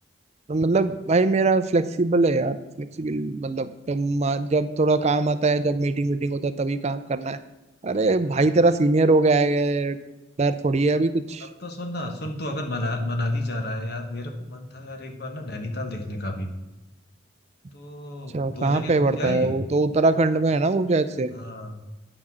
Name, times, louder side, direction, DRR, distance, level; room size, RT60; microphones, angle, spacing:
voice 1, 0.5-7.4 7.8-10.0 10.4-11.5 18.3-21.3, right 3 dB, 35° right, 12 dB, 0.4 m, -22 dB
voice 2, 11.4-16.5 17.7-19.5 21.3-21.8, left 1 dB, 60° left, 4 dB, 1.4 m, -31 dB
8.9 x 6.0 x 6.2 m, 1.0 s
head